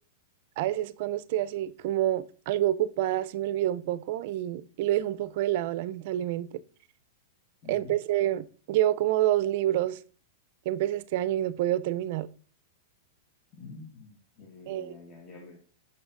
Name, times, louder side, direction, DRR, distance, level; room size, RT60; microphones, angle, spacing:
voice 1, 0.6-6.5 7.7-10.0 10.7-12.3 14.7-15.0, right 13 dB, 55° right, 0.4 m, -28 dB
voice 2, 7.6-7.9 13.5-15.6, left 3 dB, 30° left, 1.3 m, -47 dB
7.1 x 5.8 x 2.5 m
hypercardioid pair, 130°, 0 cm